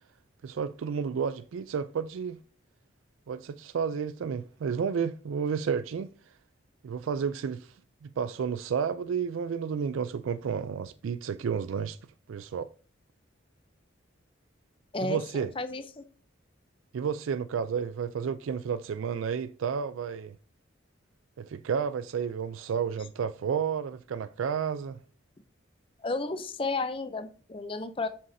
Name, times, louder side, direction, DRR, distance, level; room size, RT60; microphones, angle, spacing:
voice 1, 0.4-2.4 3.3-6.1 6.8-7.7 8.0-12.0 12.3-12.7 15.0-15.5 16.9-20.3 21.4-25.0, right 6 dB, 85° right, 0.4 m, -31 dB
voice 2, 14.9-16.1 26.0-28.1, left 3 dB, 25° left, 0.5 m, -33 dB
7.2 x 6.7 x 2.6 m
head